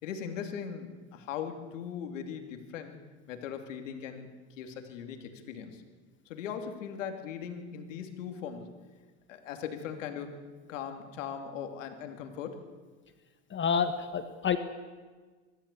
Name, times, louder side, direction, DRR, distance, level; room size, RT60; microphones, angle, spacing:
voice 1, 0.0-3.0 3.3-4.3 4.6-5.8 6.3-8.7 9.3-10.3 10.7-12.6, left 7 dB, 90° left, 6 dB, 2.8 m, -39 dB
voice 2, 13.5-14.6, left 6 dB, 30° left, 9 dB, 1.5 m, -28 dB
25.0 x 13.0 x 8.4 m, 1.4 s
supercardioid pair, 105°, 37 cm